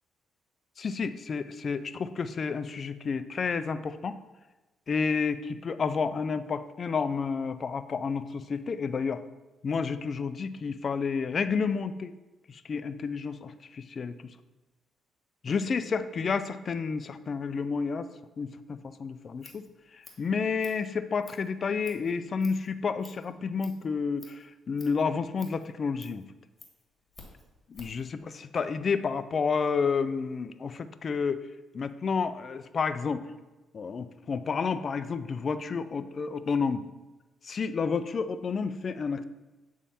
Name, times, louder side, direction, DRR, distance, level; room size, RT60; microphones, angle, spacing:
voice 1, 0.8-4.2 4.9-9.2 9.6-12.1 12.5-14.3 15.4-18.1 18.4-19.7 19.9-26.2 27.7-31.5 31.7-33.3 33.7-36.8 37.4-39.2, left 5 dB, 45° left, 12 dB, 0.4 m, -30 dB
Scissors, 19.1-28.1, left 3 dB, 25° left, 1.7 m, -54 dB
8.4 x 3.6 x 4.2 m, 1.1 s
cardioid pair, 90°, 0 cm